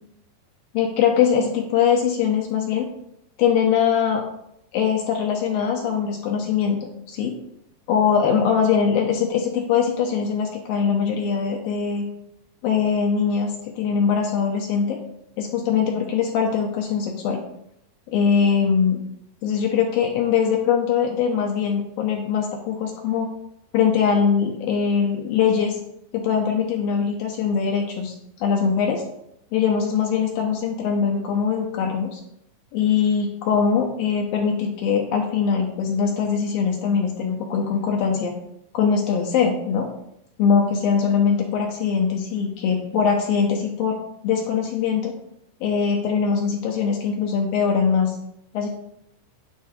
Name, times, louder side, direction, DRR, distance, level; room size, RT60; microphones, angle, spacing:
voice 1, 0.7-2.9 3.4-4.2 4.7-7.3 7.9-12.1 12.6-15.0 15.4-17.4 18.1-19.0 19.4-23.3 23.7-25.8 26.1-28.1 28.4-29.0 29.5-32.2 32.7-38.3 38.7-39.9 40.4-44.0 44.2-45.1 45.6-48.2 48.5-48.7, left 6 dB, 75° left, 0 dB, 2.2 m, -22 dB
9.3 x 3.8 x 4.9 m, 0.76 s
omnidirectional pair, 4.7 m